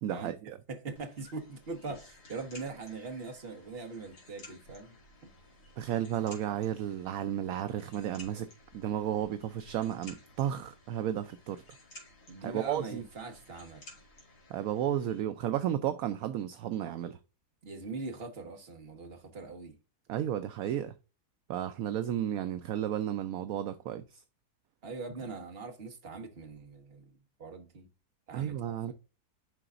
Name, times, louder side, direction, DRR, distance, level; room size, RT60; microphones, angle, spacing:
voice 1, 0.0-0.6 5.8-8.5 8.7-11.6 12.4-13.0 14.5-17.2 20.1-20.9 21.5-24.2 28.3-28.9, right 11 dB, 70° right, 0.9 m, -33 dB
voice 2, 0.7-4.9 12.3-13.9 17.6-19.8 24.8-27.9 28.3-28.9, right 4 dB, 40° right, 1.4 m, -42 dB
sound 1, 1.0-15.2, left 2 dB, 80° left, 2.8 m, -55 dB
11.0 x 3.9 x 2.5 m
omnidirectional pair, 1.7 m